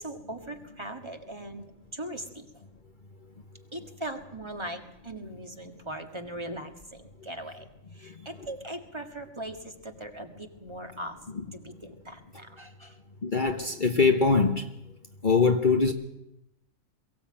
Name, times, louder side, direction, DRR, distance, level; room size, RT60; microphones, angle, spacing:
voice 1, 0.0-1.6 1.9-2.5 3.7-7.7 8.0-11.2 11.5-13.0, right 1 dB, 20° right, 5 dB, 1.8 m, -39 dB
voice 2, 13.2-14.6 15.2-15.9, left 4 dB, 40° left, 6 dB, 1.1 m, -22 dB
22.5 x 15.5 x 8.8 m, 0.87 s
omnidirectional pair, 1.4 m